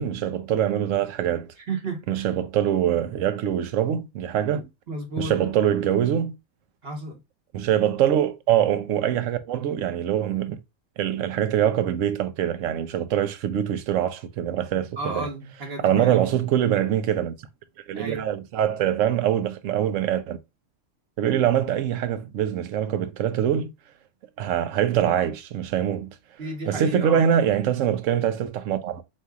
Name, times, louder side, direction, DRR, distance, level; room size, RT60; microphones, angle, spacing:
voice 1, 0.0-1.5 2.1-4.6 5.2-6.4 7.5-10.6 11.0-15.3 15.8-17.3 17.9-20.4 21.2-23.7 24.4-26.1 26.7-29.0, right 10 dB, 85° right, 1.0 m, -24 dB
voice 2, 1.7-2.3 4.5-5.3 6.8-7.2 15.0-16.3 17.9-18.2 26.4-27.2, right 2 dB, 55° right, 1.2 m, -33 dB
4.2 x 2.7 x 3.4 m
omnidirectional pair, 1.3 m